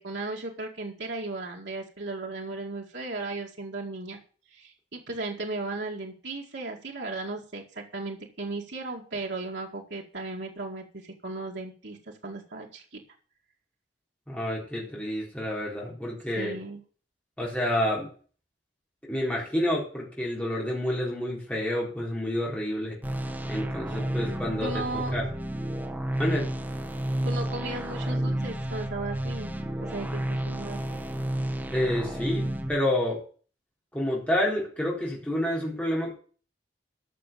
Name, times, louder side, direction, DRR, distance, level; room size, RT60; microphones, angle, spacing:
voice 1, 0.0-4.2 4.5-12.0 12.2-13.0 16.3-16.8 24.6-25.3 27.2-29.5 29.8-31.0, right 2 dB, 80° right, -1 dB, 2.2 m, -36 dB
voice 2, 14.3-16.6 17.4-18.1 19.1-23.0 23.5-25.3 26.2-26.5 31.7-33.2 33.9-36.2, left 1 dB, 10° left, -4 dB, 4.0 m, -29 dB
sound 1, 23.0-32.7, right 1 dB, 10° right, 1.5 m, -31 dB
13.5 x 6.3 x 6.9 m, 0.40 s
head